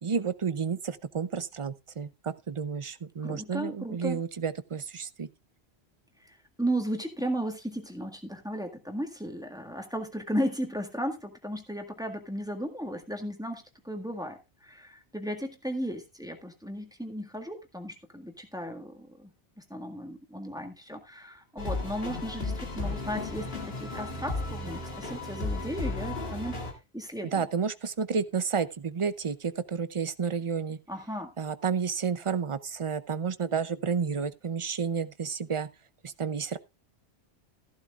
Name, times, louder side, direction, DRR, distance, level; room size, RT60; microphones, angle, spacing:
voice 1, 0.0-5.3 27.3-30.8 31.4-35.7 36.0-36.6, right 6 dB, 35° right, 0.6 m, -31 dB
voice 2, 3.2-4.2 6.3-19.3 19.7-26.6 26.9-27.5 30.9-31.3, equal, 5° right, 1.7 m, -35 dB
sound 1, 21.6-26.7, left 2 dB, 65° left, 2.5 m, -34 dB
14.5 x 11.5 x 2.4 m
omnidirectional pair, 1.1 m